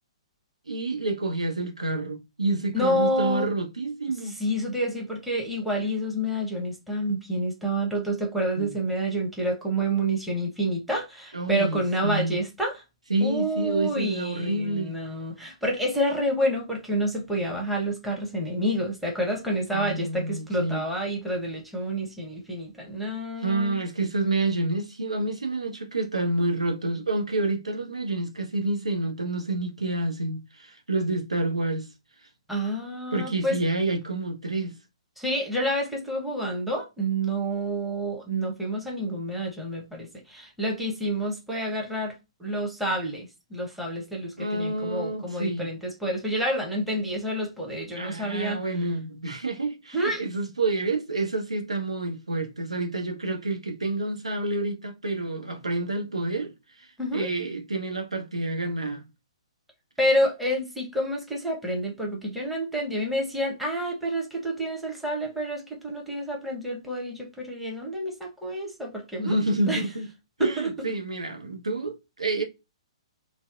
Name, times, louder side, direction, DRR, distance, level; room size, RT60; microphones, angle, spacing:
voice 1, 0.7-4.3 8.6-8.8 11.3-12.4 13.1-14.9 19.7-20.8 23.4-31.9 33.1-34.7 44.4-45.7 47.9-56.5 56.8-59.0 69.2-70.1 70.4-72.4, right 2 dB, 80° right, 0.7 m, -28 dB
voice 2, 2.7-3.5 4.2-12.8 13.2-24.1 32.5-33.5 35.2-48.6 49.9-50.2 57.0-57.3 60.0-69.4 69.7-69.8 70.4-70.7, right 1 dB, ahead, 0.8 m, -28 dB
2.7 x 2.0 x 2.4 m
figure-of-eight pair, 120°, 3 cm